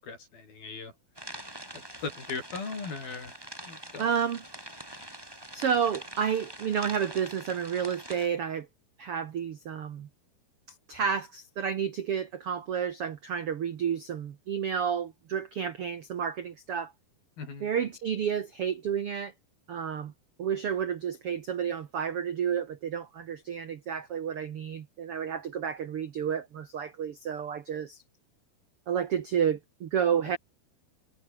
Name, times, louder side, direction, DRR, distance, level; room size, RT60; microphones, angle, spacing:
voice 1, 0.0-0.9 2.0-3.4 3.7-4.1 17.4-17.7, left 4 dB, 65° left, 8.6 m, -38 dB
sound 1, 1.1-8.3, right 1 dB, 5° right, 4.2 m, -44 dB
voice 2, 4.0-4.4 5.5-8.7 9.0-10.1 10.9-16.9 17.6-19.3 19.7-20.1 20.4-28.0 28.9-30.4, right 7 dB, 65° right, 1.4 m, -30 dB
omnidirectional pair, 4.5 m